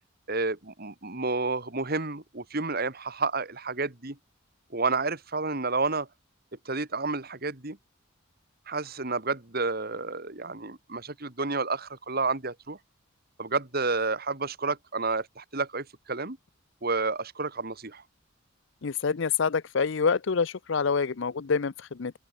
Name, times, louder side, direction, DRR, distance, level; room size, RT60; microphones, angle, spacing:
voice 1, 0.3-4.2 4.7-6.1 6.7-7.8 8.7-12.8 13.4-16.4 16.8-18.0, right 3 dB, 45° right, 2.2 m, -30 dB
voice 2, 18.8-22.1, left 5 dB, 60° left, 0.6 m, -27 dB
open air
head